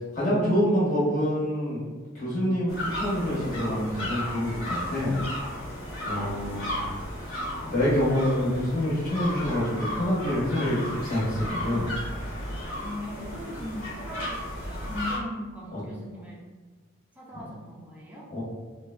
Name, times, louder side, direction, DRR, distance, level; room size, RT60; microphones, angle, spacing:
voice 1, 0.1-1.8 2.1-5.1 6.1-6.7 7.3-11.9 15.7-15.8 17.3-17.4 18.3-18.4, equal, 40° left, -8 dB, 1.0 m, -26 dB
sound 1, 2.7-15.2, equal, 75° left, 1.1 m, -34 dB
voice 2, 12.8-16.4 17.2-18.3, left 1 dB, 5° right, -5 dB, 0.4 m, -39 dB
3.4 x 2.0 x 2.2 m, 1.3 s
head